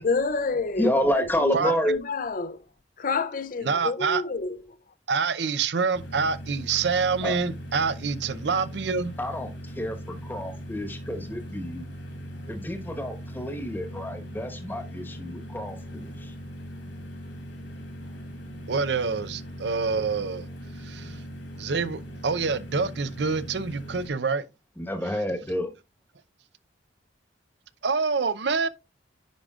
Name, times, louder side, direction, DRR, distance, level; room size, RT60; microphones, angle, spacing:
voice 1, 0.0-2.6 3.0-4.6, left 4 dB, 50° left, 0.5 m, -29 dB
voice 2, 0.8-2.0 7.2-7.3 9.2-11.9 12.5-16.3 24.8-25.7, equal, 10° left, 1.2 m, -29 dB
voice 3, 3.6-4.2 5.1-9.1 18.7-20.5 20.8-21.2 21.6-24.4 27.8-28.7, right 5 dB, 65° right, 0.6 m, -26 dB
sound 1, 5.9-24.1, equal, 75° left, 2.9 m, -40 dB
10.5 x 5.0 x 2.4 m
head